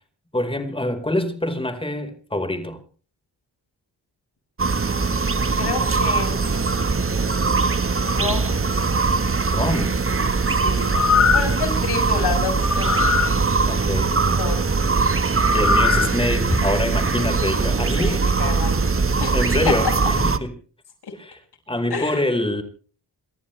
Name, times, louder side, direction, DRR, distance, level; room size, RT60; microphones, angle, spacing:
voice 1, 0.3-2.8 9.4-10.0 13.7-14.1 15.5-18.3 19.0-20.6 21.1-21.4 21.7-22.6, left 1 dB, 15° left, 4.8 m, -25 dB
sound 1, 4.6-20.4, right 4 dB, 35° right, 1.5 m, -21 dB
voice 2, 5.6-6.6 8.0-8.6 10.4-10.8 11.3-13.0 14.2-14.8 18.0-18.8 19.2-19.4 19.7-19.8 21.9-22.2, left 5 dB, 80° left, 6.8 m, -29 dB
sound 2, 10.8-11.6 12.6-13.3 15.4-16.1 16.5-16.6, left 5 dB, 45° left, 3.6 m, -20 dB
30.0 x 14.0 x 3.4 m
cardioid pair, 65°, 39 cm